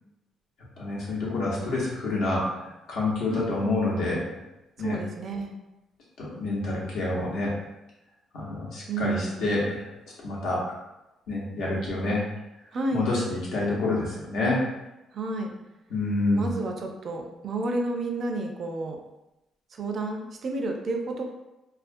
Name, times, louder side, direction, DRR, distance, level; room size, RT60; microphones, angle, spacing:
voice 1, 0.8-4.2 4.8-5.0 6.2-7.5 8.3-9.8 10.2-10.6 11.3-12.2 12.9-14.6 15.9-16.5, left 2 dB, 80° left, -4 dB, 0.8 m, -27 dB
voice 2, 3.3-3.7 4.8-5.5 8.9-9.4 12.7-13.1 15.1-15.5 16.3-19.0 19.7-21.3, right 2 dB, 50° right, 3 dB, 0.4 m, -31 dB
2.4 x 2.2 x 2.5 m, 0.96 s
cardioid pair, 110°, 0 cm